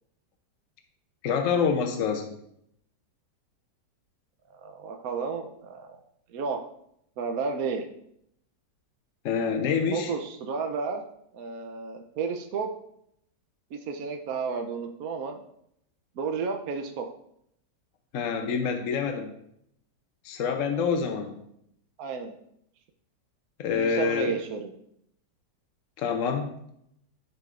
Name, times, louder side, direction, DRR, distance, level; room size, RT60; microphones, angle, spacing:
voice 1, 1.2-2.4 9.2-10.1 18.1-19.3 20.2-21.5 23.6-24.4 26.0-26.5, left 6 dB, 60° left, 4 dB, 0.9 m, -27 dB
voice 2, 4.5-6.0 6.3-6.6 7.2-7.8 9.9-11.0 11.3-12.7 13.7-15.4 16.2-17.1 22.0-22.3 23.7-24.7, right 5 dB, 65° right, 5 dB, 1.0 m, -32 dB
12.0 x 5.0 x 2.5 m, 0.73 s
omnidirectional pair, 1.9 m